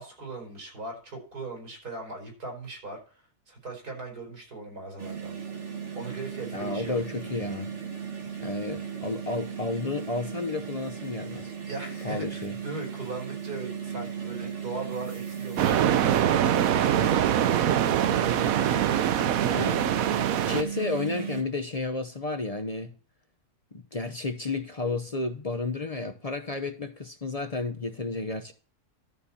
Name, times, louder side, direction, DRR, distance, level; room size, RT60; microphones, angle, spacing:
voice 1, 0.0-3.2 3.5-5.3 5.9-7.0 11.7-19.4, right 3 dB, 90° right, 4.9 m, -39 dB
sound 1, 5.0-21.4, right 7 dB, 50° right, 2.1 m, -36 dB
voice 2, 6.5-7.7 8.4-11.5 12.0-12.5 19.5-19.8 20.5-22.9 23.7-28.5, left 3 dB, 35° left, 0.6 m, -32 dB
sound 2, 15.6-20.6, right 10 dB, 70° right, 1.1 m, -24 dB
12.5 x 4.2 x 7.1 m
omnidirectional pair, 1.6 m